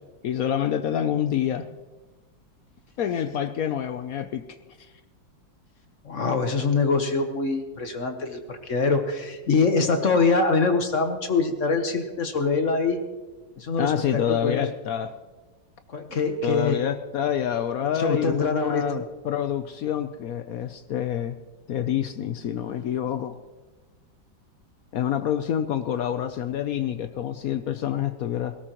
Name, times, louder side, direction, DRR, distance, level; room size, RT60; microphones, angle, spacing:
voice 1, 0.2-1.7 3.0-4.9 13.8-15.1 16.4-21.4 21.7-23.4 24.9-28.6, left 9 dB, 75° left, 10 dB, 0.8 m, -27 dB
voice 2, 6.0-13.0 13.6-14.6 15.9-16.8 18.0-19.0, left 4 dB, 45° left, 6 dB, 1.2 m, -24 dB
18.5 x 17.0 x 3.0 m, 1.2 s
omnidirectional pair, 2.2 m